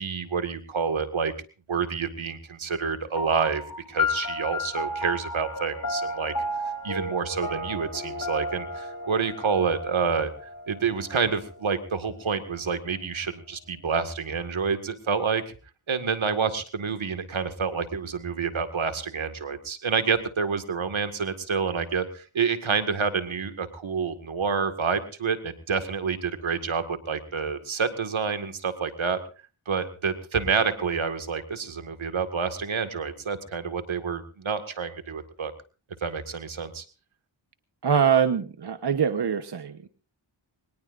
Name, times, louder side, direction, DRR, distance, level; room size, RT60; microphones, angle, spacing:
voice 1, 0.0-1.3 1.7-3.6 3.9-6.3 6.8-10.3 10.7-15.4 15.9-29.2 29.7-35.5 36.0-36.8, right 5 dB, 75° right, 9 dB, 2.1 m, -28 dB
sound 1, 3.2-12.0, left 2 dB, 45° left, 3.4 m, -33 dB
voice 2, 37.8-39.9, right 7 dB, 55° right, 8 dB, 1.3 m, -23 dB
22.5 x 20.0 x 2.6 m, 0.35 s
cardioid pair, 40°, 47 cm